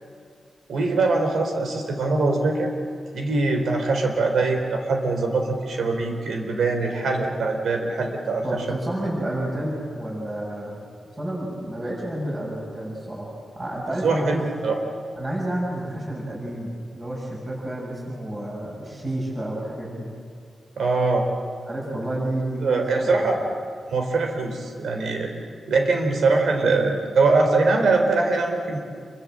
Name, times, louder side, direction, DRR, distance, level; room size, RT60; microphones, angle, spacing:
voice 1, 0.7-2.7 3.1-8.7 14.0-14.8 20.8-21.3 22.6-23.4 23.9-25.3 25.7-28.8, right 3 dB, 90° right, 4 dB, 4.0 m, -22 dB
voice 2, 8.4-10.7 11.2-14.5 15.2-20.1 21.7-23.2, right 1 dB, 25° right, -3 dB, 6.8 m, -30 dB
28.0 x 24.0 x 7.7 m, 2.2 s
wide cardioid pair, 165°, 0 cm